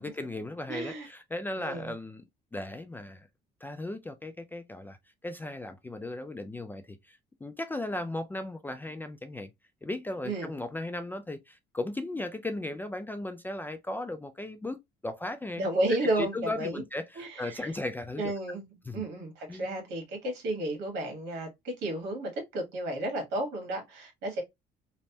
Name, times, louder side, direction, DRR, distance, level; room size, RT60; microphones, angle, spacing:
voice 1, 0.0-2.2 2.5-3.3 3.6-5.0 5.2-9.5 9.8-15.6 16.2-18.2 18.9-19.0 19.5-19.7, left 2 dB, 10° left, 0.3 m, -36 dB
voice 2, 0.7-1.1 1.6-1.9 10.2-10.5 15.6-16.8 17.1-17.7 18.2-24.4, right 1 dB, 85° right, 1.4 m, -32 dB
3.2 x 2.1 x 2.7 m
cardioid pair, 110°, 17 cm